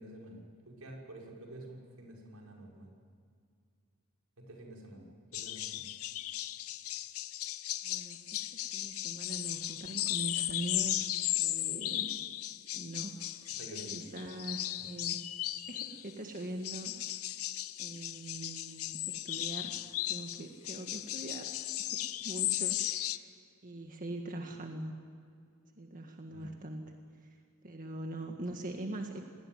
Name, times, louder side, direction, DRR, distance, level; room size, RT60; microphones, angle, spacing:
voice 1, 0.0-2.9 4.4-5.9 13.6-14.0 26.3-26.5, right 1 dB, 85° right, -1 dB, 5.9 m, -49 dB
sound 1, 5.3-16.1 16.6-23.2, left 14 dB, 80° left, 0.9 m, -36 dB
voice 2, 7.8-12.2 12.7-13.2 13.9-15.2 15.7-16.9 17.8-19.8 20.1-21.5 21.8-23.3 23.6-25.0 25.7-26.9 27.2-29.2, right 1 dB, 40° right, 3 dB, 1.8 m, -42 dB
27.5 x 19.5 x 9.4 m, 2.2 s
head